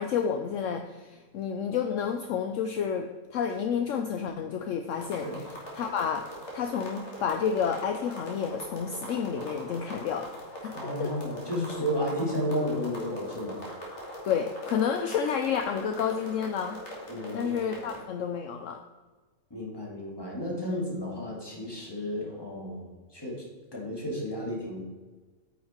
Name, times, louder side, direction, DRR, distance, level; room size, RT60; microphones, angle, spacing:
voice 1, 0.0-5.3 5.7-6.3 6.5-10.3 10.6-11.1 14.3-16.8 17.3-18.8, left 7 dB, 70° left, 6 dB, 0.9 m, -30 dB
sound 1, 4.9-18.0, equal, 55° left, 2.4 m, -42 dB
voice 2, 10.7-13.6 17.1-17.5 19.5-23.4 23.7-24.8, equal, 15° left, -2 dB, 2.1 m, -32 dB
9.1 x 5.7 x 4.3 m, 1.3 s
omnidirectional pair, 1.5 m